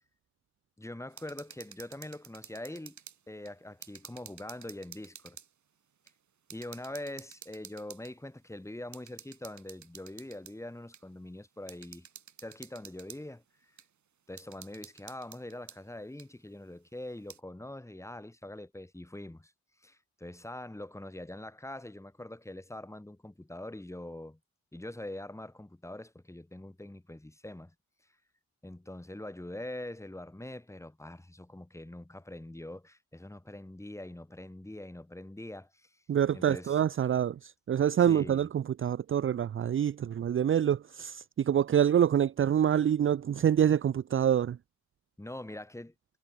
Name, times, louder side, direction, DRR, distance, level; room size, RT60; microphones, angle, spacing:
voice 1, 0.8-3.0 3.3-5.4 6.5-12.1 12.4-13.7 14.3-19.5 19.8-24.4 24.7-27.7 28.6-36.0 36.3-36.8 38.0-38.5 45.2-45.9, left 1 dB, 10° left, 4.1 m, -43 dB
sound 1, 1.1-3.2 3.5-5.5 6.1-6.2 6.5-8.1 8.9-10.6 10.9-11.0 11.7-13.2 13.8-13.9 14.4-15.8 16.2-16.3 17.1-17.4, right 8 dB, 75° right, 7.8 m, -50 dB
voice 2, 36.1-44.6, right 9 dB, 45° right, 0.5 m, -26 dB
wide cardioid pair, 115°, 29 cm